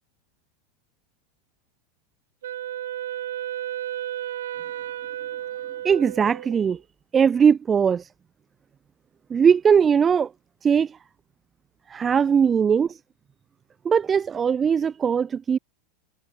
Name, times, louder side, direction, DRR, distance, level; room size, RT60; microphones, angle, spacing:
Wind instrument woodwind instrument, 2.4-6.7, right 12 dB, 90° right, 0.9 m, -33 dB
voice 1, 5.8-6.8 7.1-8.1 9.3-10.3 10.6-11.0 11.9-13.0 13.8-15.6, right 7 dB, 20° right, 0.3 m, -20 dB
supercardioid pair, 135°, 0 cm